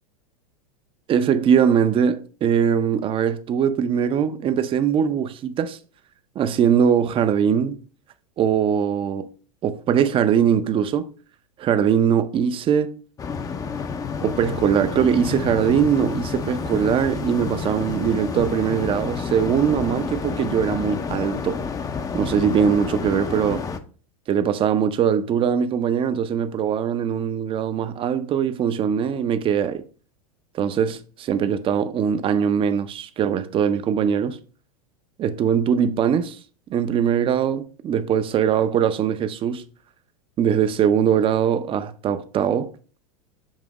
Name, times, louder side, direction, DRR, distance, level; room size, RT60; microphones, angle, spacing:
voice 1, 1.1-5.8 6.4-7.8 8.4-9.3 9.6-11.1 11.6-13.0 14.2-21.6 22.1-23.6 24.3-29.8 30.5-34.4 35.2-36.4 36.7-39.6 40.4-42.7, right 8 dB, 30° right, 0.6 m, -21 dB
sound 1, 13.2-23.8, left 5 dB, 20° left, 0.6 m, -29 dB
7.2 x 2.7 x 4.8 m
hypercardioid pair, 115°, 18 cm